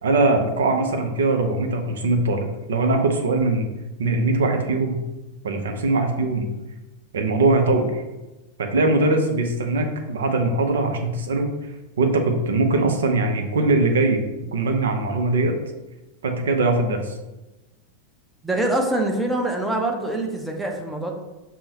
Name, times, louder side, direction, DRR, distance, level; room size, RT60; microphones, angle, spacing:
voice 1, 0.0-3.7 4.0-5.0 5.4-6.5 7.1-8.0 8.6-11.5 12.0-14.2 14.5-15.5 16.2-17.1, right 2 dB, 65° right, 4 dB, 0.5 m, -21 dB
voice 2, 18.4-21.1, right 1 dB, 5° right, 1 dB, 0.6 m, -24 dB
5.3 x 2.1 x 2.8 m, 1.1 s
figure-of-eight pair, 90°, 0 cm